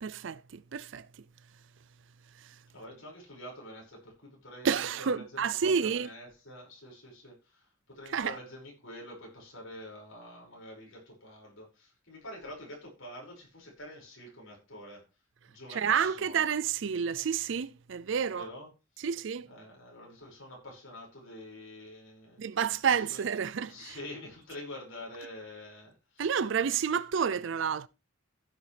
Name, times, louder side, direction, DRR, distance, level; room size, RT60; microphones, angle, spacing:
voice 1, 0.0-1.1 4.6-6.1 8.1-8.4 15.7-18.5 19.0-19.5 22.4-24.0 26.2-27.9, right 7 dB, 65° right, 0.5 m, -30 dB
voice 2, 2.7-4.7 5.0-15.0 15.5-16.4 18.3-18.7 19.4-22.6 22.9-23.2 23.6-26.3, left 1 dB, 75° left, 5.8 m, -47 dB
14.5 x 7.5 x 3.4 m
head